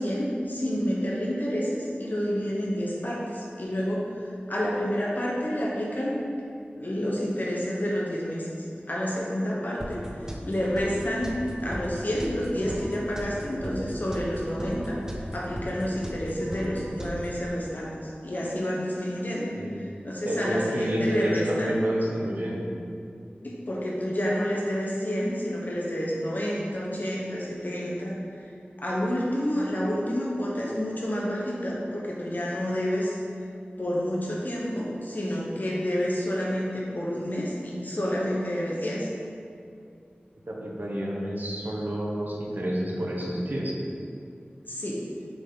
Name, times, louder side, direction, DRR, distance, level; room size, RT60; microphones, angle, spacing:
voice 1, 0.0-4.0 4.5-6.2 6.7-10.1 10.4-17.9 18.2-19.5 20.0-21.7 23.4-28.2 28.8-33.1 33.8-39.1 44.7-45.0, equal, 50° left, -4 dB, 1.1 m, -29 dB
sound 1, 9.8-17.5, equal, 15° right, 0.7 m, -37 dB
voice 2, 20.3-22.7 40.5-43.8, equal, 55° right, -3 dB, 1.0 m, -29 dB
6.0 x 4.1 x 3.8 m, 2.4 s
wide cardioid pair, 55°, 4 cm